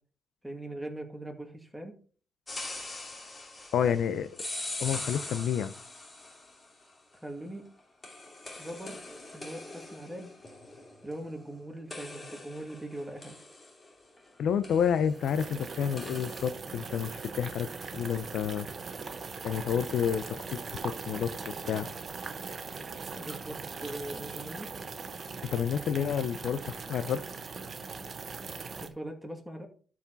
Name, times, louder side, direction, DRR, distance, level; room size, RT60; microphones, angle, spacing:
voice 1, 0.4-2.0 7.2-7.7 8.6-9.0 9.3-10.3 11.0-13.4 23.2-24.7 28.8-29.7, right 1 dB, 5° right, 3 dB, 2.2 m, -41 dB
sound 1, 2.5-6.7 8.0-11.5 11.9-14.3 14.6-15.2 16.0-16.6, left 2 dB, 25° left, 2.5 m, -42 dB
voice 2, 3.7-4.3 4.8-5.7 14.4-18.7 19.1-19.2 19.4-21.9 25.5-27.2, left 8 dB, 70° left, 13 dB, 0.6 m, -30 dB
sound 2, 15.1-28.9, right 4 dB, 40° right, 1.1 m, -40 dB
12.5 x 4.9 x 4.0 m, 0.42 s
cardioid pair, 90°, 0 cm